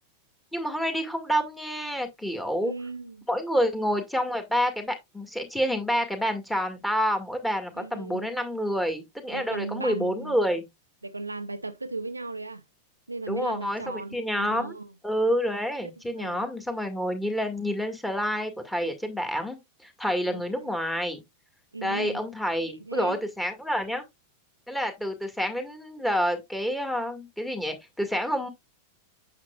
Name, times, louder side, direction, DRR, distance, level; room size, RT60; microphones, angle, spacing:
voice 1, 0.5-2.7 3.3-10.7 13.3-14.8 15.0-21.2 21.8-24.0 24.7-28.5, equal, 5° left, 2.0 m, -28 dB
voice 2, 2.6-3.2 7.8-8.3 9.3-10.4 11.0-12.6 13.1-14.9 16.2-16.5 20.2-20.7 21.7-22.2 22.7-23.2, right 3 dB, 85° right, 0.6 m, -36 dB
8.7 x 6.7 x 2.4 m
figure-of-eight pair, 90°, 0 cm